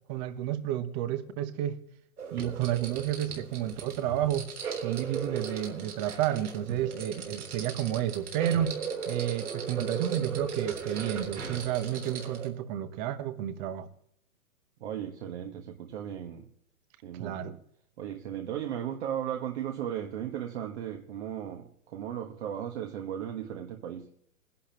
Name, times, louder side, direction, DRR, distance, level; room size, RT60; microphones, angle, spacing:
voice 1, 0.1-1.8 2.3-4.5 4.8-8.8 9.1-13.9 17.2-17.5, right 12 dB, 30° right, 1.1 m, -31 dB
sound 1, 2.2-12.5, right 5 dB, 80° right, 3.6 m, -37 dB
voice 2, 14.8-16.5 17.0-17.4 18.0-24.1, right 10 dB, 50° right, 1.5 m, -36 dB
21.0 x 11.5 x 2.9 m
hypercardioid pair, 140°, 43 cm